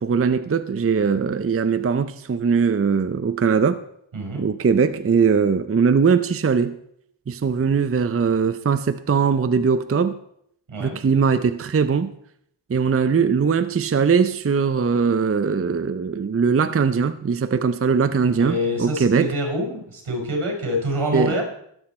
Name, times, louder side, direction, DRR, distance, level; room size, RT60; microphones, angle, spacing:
voice 1, 0.0-3.8 4.3-6.8 7.3-10.2 10.8-12.1 12.7-19.3 21.1-21.4, right 5 dB, 30° right, 0.5 m, -20 dB
voice 2, 4.1-4.5 10.7-11.0 18.4-21.4, equal, 75° right, 4.8 m, -26 dB
21.5 x 8.0 x 4.3 m
wide cardioid pair, 115°, 49 cm